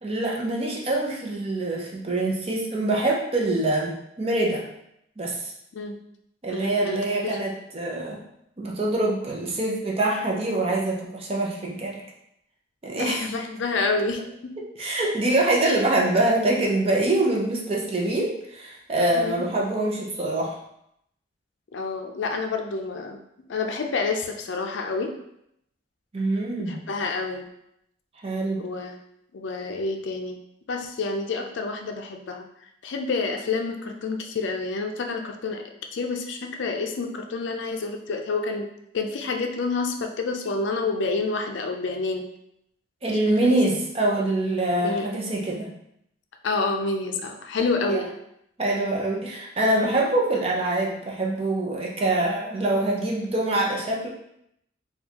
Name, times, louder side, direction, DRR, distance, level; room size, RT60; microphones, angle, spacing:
voice 1, 0.0-4.6 5.2-5.5 6.4-8.2 8.6-12.0 12.8-13.3 14.8-20.6 26.1-26.9 28.2-28.6 43.0-45.7 47.9-48.0 48.6-54.1, right 2 dB, 30° right, -2 dB, 0.6 m, -24 dB
voice 2, 6.5-7.4 13.0-14.6 14.8-14.9 19.1-19.5 21.7-23.2 23.5-25.1 26.7-27.5 28.6-29.0 29.3-30.4 30.7-32.5 32.8-35.6 35.9-38.7 38.9-42.3 43.4-43.8 44.8-45.1 46.4-48.1, left 3 dB, 70° left, 4 dB, 0.4 m, -28 dB
4.4 x 2.3 x 2.8 m, 0.77 s
head